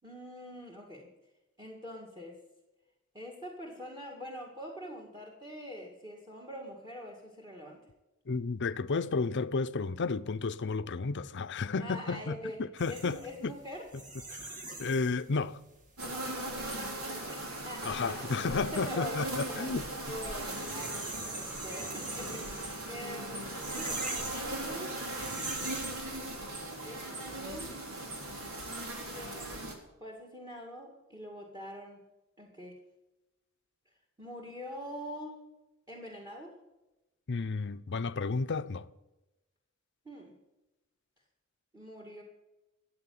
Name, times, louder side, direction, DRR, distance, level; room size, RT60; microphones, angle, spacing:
voice 1, 0.0-1.1 1.6-2.4 3.1-7.8 11.8-12.6 12.8-13.9 16.1-18.3 18.7-19.8 20.0-25.0 26.8-27.7 29.1-29.6 30.0-32.0 32.4-32.8 34.2-35.4 35.9-36.6 40.0-40.3 41.7-42.2, equal, 20° right, 2.1 m, -44 dB
voice 2, 8.3-13.5 14.4-14.5 14.8-15.6 17.8-19.9 37.3-38.9, left 4 dB, 55° left, 0.6 m, -32 dB
sound 1, 12.8-26.2, right 2 dB, 40° right, 2.4 m, -43 dB
sound 2, 16.0-29.7, right 1 dB, 85° right, 3.4 m, -39 dB
13.5 x 8.5 x 8.6 m
head